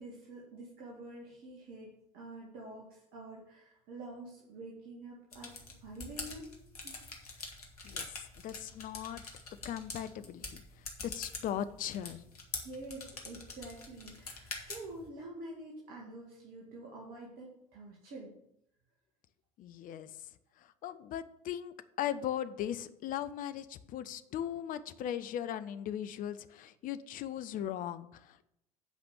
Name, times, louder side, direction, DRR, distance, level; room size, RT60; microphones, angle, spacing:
voice 1, 0.0-5.5 5.8-6.5 6.8-6.9 12.6-18.3, right 2 dB, 55° right, -2 dB, 2.1 m, -47 dB
sound 1, 5.3-15.1, left 3 dB, 85° left, 1.7 m, -45 dB
voice 2, 8.4-9.2 9.6-10.4 11.0-12.2 19.6-20.1 20.8-28.4, left 10 dB, 45° left, 12 dB, 0.8 m, -38 dB
9.0 x 5.2 x 7.0 m, 0.77 s
figure-of-eight pair, 65°, 19 cm